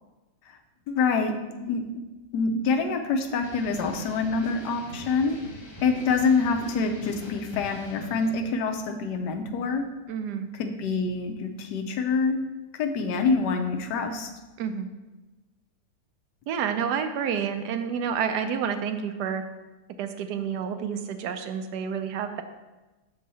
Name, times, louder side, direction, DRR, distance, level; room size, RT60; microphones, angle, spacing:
voice 1, 0.9-1.3 1.6-1.8 2.3-5.4 5.8-9.8 10.5-12.4 12.8-14.3, left 4 dB, 80° left, 4 dB, 1.3 m, -26 dB
sound 1, 3.4-8.4, left 1 dB, 25° left, 0.5 m, -42 dB
voice 2, 10.1-10.5 14.6-14.9 16.5-19.4 20.0-22.4, right 7 dB, 75° right, 8 dB, 1.1 m, -29 dB
6.5 x 4.6 x 4.0 m, 1.1 s
omnidirectional pair, 1.8 m